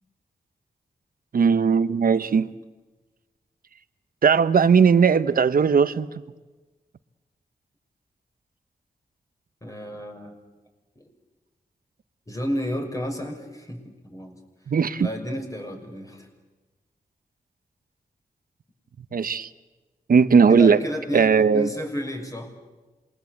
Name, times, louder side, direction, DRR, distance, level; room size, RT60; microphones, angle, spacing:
voice 1, 1.3-2.5 4.2-6.2 14.7-15.1 19.1-19.5 20.1-20.8 21.1-21.7, right 6 dB, 70° right, 13 dB, 1.0 m, -18 dB
voice 2, 9.6-10.3 10.9-11.0 12.3-14.4 15.0-16.3 20.5-22.5, equal, 20° left, 2 dB, 6.5 m, -32 dB
27.5 x 22.0 x 8.2 m, 1.2 s
cardioid pair, 55°, 15 cm